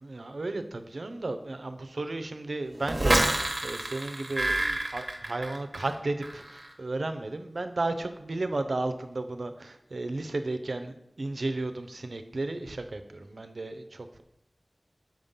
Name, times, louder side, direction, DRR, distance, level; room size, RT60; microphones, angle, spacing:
voice 1, 0.0-14.2, right 2 dB, 85° right, 8 dB, 0.6 m, -34 dB
sound 1, 2.9-5.9 6.2-6.7, right 1 dB, 45° right, 1.0 m, -28 dB
7.4 x 3.7 x 5.5 m, 0.83 s
wide cardioid pair, 50°, 0 cm